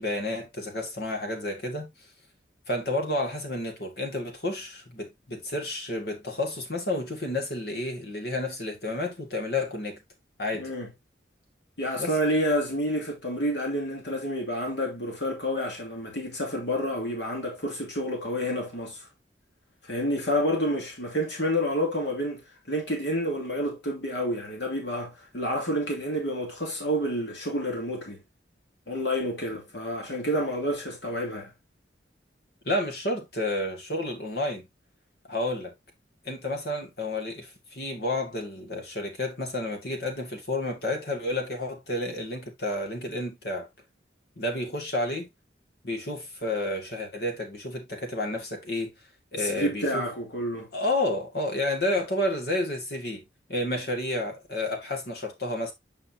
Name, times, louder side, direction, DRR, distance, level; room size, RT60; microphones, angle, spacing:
voice 1, 0.0-1.9 2.7-10.0 10.4-10.7 12.0-12.1 32.6-34.7 35.3-35.7 36.2-43.7 44.4-45.3 45.8-48.9 49.3-50.1 50.7-53.2 53.5-55.7, left 1 dB, 60° left, 2.2 m, -30 dB
voice 2, 10.6-10.9 11.8-19.0 19.9-22.4 22.7-28.2 28.9-31.5 49.4-50.7, equal, 75° left, 2.8 m, -29 dB
7.6 x 5.3 x 2.8 m
head